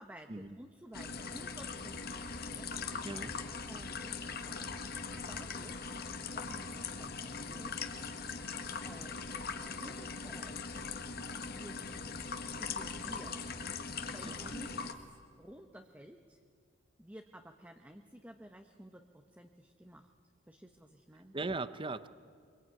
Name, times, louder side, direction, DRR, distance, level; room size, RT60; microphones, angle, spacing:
voice 1, 0.0-2.7 3.7-4.8 5.3-5.9 6.3-8.0 8.8-9.5 9.8-10.7 11.5-12.2 12.5-13.6 14.1-14.8 15.4-16.4 17.0-20.1 20.5-21.3, equal, 10° right, 4 dB, 1.0 m, -53 dB
sound 1, 0.9-14.9, left 4 dB, 50° left, 1.7 m, -41 dB
voice 2, 14.2-14.5 21.3-22.1, right 3 dB, 25° right, 14 dB, 0.7 m, -39 dB
25.0 x 23.0 x 9.5 m, 2.2 s
head